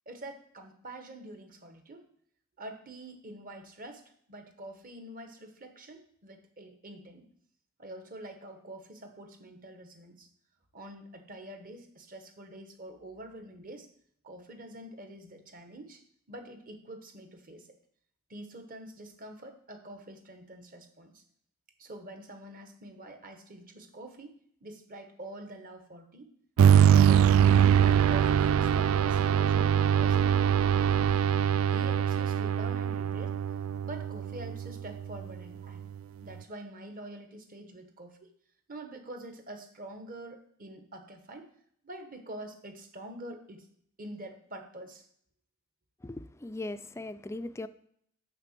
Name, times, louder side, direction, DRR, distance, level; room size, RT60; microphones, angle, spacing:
voice 1, 0.1-2.1 2.6-4.0 4.3-7.2 7.8-10.3 10.7-13.9 14.2-16.0 16.3-17.7 18.3-21.2 21.8-26.3 26.7-27.7 28.1-31.1 31.7-33.4 33.8-35.8 36.2-38.3 38.7-41.5 41.8-43.7 44.0-45.1, right 1 dB, 45° right, 6 dB, 1.2 m, -46 dB
sound 1, 26.6-35.3, right 9 dB, 85° right, 0.3 m, -23 dB
voice 2, 46.0-47.7, left 2 dB, 15° left, 12 dB, 0.4 m, -39 dB
6.8 x 5.8 x 7.4 m, 0.66 s
head